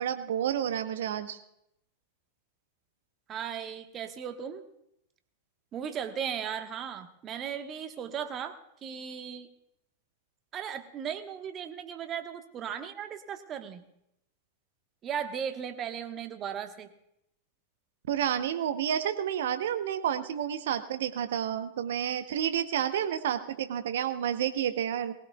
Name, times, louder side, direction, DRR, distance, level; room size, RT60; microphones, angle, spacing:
voice 1, 0.0-1.4 18.1-25.1, right 9 dB, 60° right, 10 dB, 1.0 m, -30 dB
voice 2, 3.3-4.6 5.7-9.5 10.5-13.8 15.0-16.9, right 8 dB, 30° right, 7 dB, 1.3 m, -36 dB
21.0 x 16.0 x 2.3 m, 0.80 s
figure-of-eight pair, 90°, 0 cm